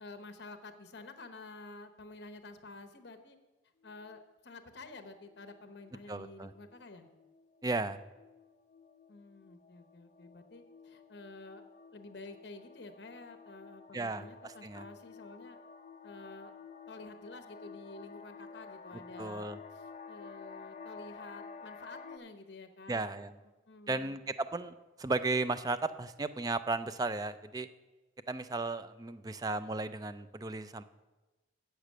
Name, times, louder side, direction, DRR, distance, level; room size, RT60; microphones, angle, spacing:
voice 1, 0.0-3.4 3.8-7.1 9.1-11.6 11.9-15.6 16.0-16.5 16.9-24.2, left 2 dB, 60° left, 8 dB, 0.9 m, -50 dB
sound 1, 3.8-4.3 4.9-5.0 5.3-5.6 5.9-22.2, left 5 dB, 35° left, 0.6 m, -52 dB
voice 2, 6.1-6.5 7.6-8.0 13.9-14.8 19.2-19.6 22.9-23.3 23.9-27.7 28.3-30.8, right 3 dB, 20° right, 12 dB, 0.3 m, -35 dB
8.1 x 6.6 x 7.5 m, 1.1 s
head